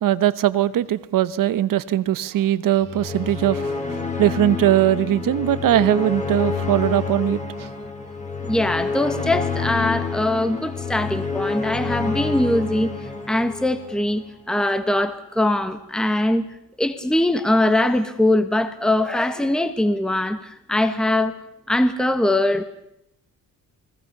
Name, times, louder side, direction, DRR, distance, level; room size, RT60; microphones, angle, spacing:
voice 1, 0.0-3.7 4.2-7.7, right 12 dB, 70° right, 1.2 m, -20 dB
sound 1, 2.8-14.1, left 4 dB, 20° left, 3.6 m, -28 dB
voice 2, 8.4-16.4 16.8-21.3 21.7-22.6, left 1 dB, ahead, 1.4 m, -22 dB
29.5 x 20.5 x 6.8 m
cardioid pair, 145°, 35 cm